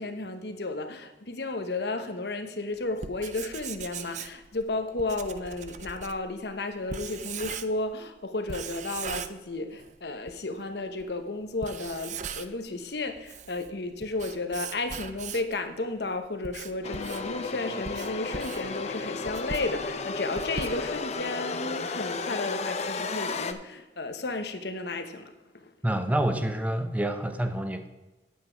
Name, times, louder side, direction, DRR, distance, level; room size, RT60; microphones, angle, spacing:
voice 1, 0.0-25.7, left 2 dB, 65° left, 8 dB, 1.0 m, -33 dB
Writing, 2.9-8.0 8.5-9.9 10.3-10.4 11.0-11.1 11.5-12.7 13.1-15.6 16.2-21.2, right 6 dB, 40° right, 0.5 m, -39 dB
sound 1, 16.8-23.5, left 4 dB, 40° left, 0.6 m, -33 dB
voice 2, 25.8-27.9, right 1 dB, 10° right, 7 dB, 0.8 m, -27 dB
9.7 x 8.4 x 4.5 m, 1.1 s
head